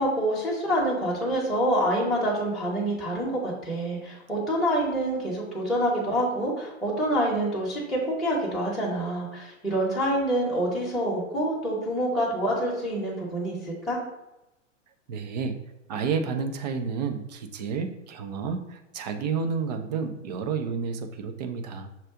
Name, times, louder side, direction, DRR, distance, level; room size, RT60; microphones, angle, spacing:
voice 1, 0.0-14.0, right 1 dB, ahead, -7 dB, 0.9 m, -27 dB
voice 2, 15.1-15.6 15.9-21.9, right 5 dB, 35° right, 6 dB, 0.4 m, -30 dB
5.7 x 2.4 x 3.6 m, 0.93 s
figure-of-eight pair, 105°, 39 cm